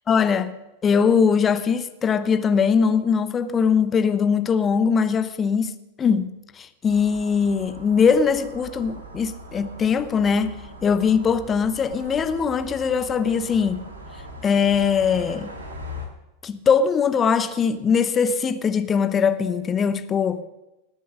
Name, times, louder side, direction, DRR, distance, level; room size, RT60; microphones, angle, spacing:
voice 1, 0.1-0.5 0.8-13.8 14.4-15.5 16.4-20.4, left 6 dB, 20° left, 0.8 m, -21 dB
sound 1, 6.9-16.1, equal, 70° right, 2.6 m, -40 dB
19.5 x 6.8 x 6.4 m
figure-of-eight pair, 90°, 0 cm